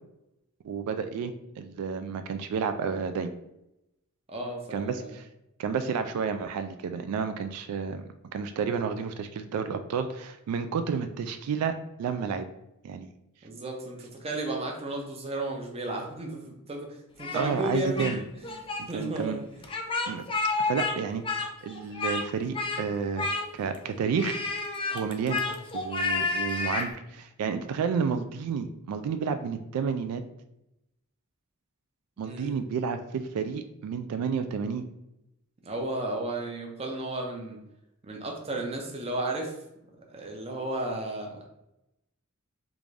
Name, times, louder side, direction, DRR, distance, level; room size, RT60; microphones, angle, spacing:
voice 1, 0.6-3.3 4.7-5.3 5.6-12.5 12.8-13.1 17.3-18.2 18.8-19.4 20.1-20.2 20.6-24.4 24.9-25.4 25.7-30.2 32.2-34.9, right 6 dB, 90° right, 12 dB, 0.3 m, -31 dB
voice 2, 4.3-5.1 13.4-18.1 18.5-18.6 18.9-19.7 32.2-32.6 35.6-37.6 38.0-39.5 40.1-41.5, right 1 dB, 25° right, 1 dB, 0.6 m, -33 dB
Speech, 17.2-18.2 18.4-18.8 19.6-21.0 21.2-22.3 22.5-22.8 23.2-23.8 24.2-26.9, left 3 dB, 25° left, 0.3 m, -30 dB
3.5 x 2.5 x 3.2 m, 0.87 s
head